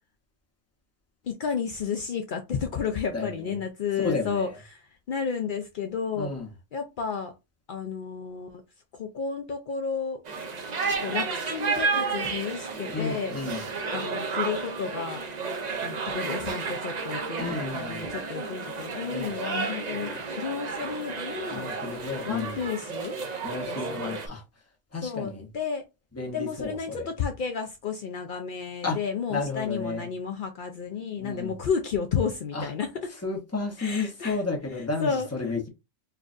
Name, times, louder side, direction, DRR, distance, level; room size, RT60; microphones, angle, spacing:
voice 1, 1.2-6.3 6.7-7.3 7.7-8.6 8.9-10.2 11.0-13.3 13.9-15.2 15.8-17.4 17.7-21.7 22.3-23.2 23.7-24.2 25.0-25.8 26.3-32.9 33.8-34.4 35.0-35.3, left 6 dB, 80° left, 0.4 m, -32 dB
voice 2, 3.1-3.5 4.0-4.5 6.2-6.5 12.9-13.6 17.4-18.1 19.1-19.3 19.9-20.0 21.5-22.6 23.4-24.4 24.9-25.5 26.2-27.1 28.8-29.0 29.3-30.1 31.2-31.6 32.5-32.7 33.2-35.7, left 3 dB, 15° left, 0.7 m, -32 dB
sound 1, 10.2-24.3, right 4 dB, 55° right, 0.5 m, -32 dB
4.5 x 2.4 x 2.5 m
omnidirectional pair, 1.4 m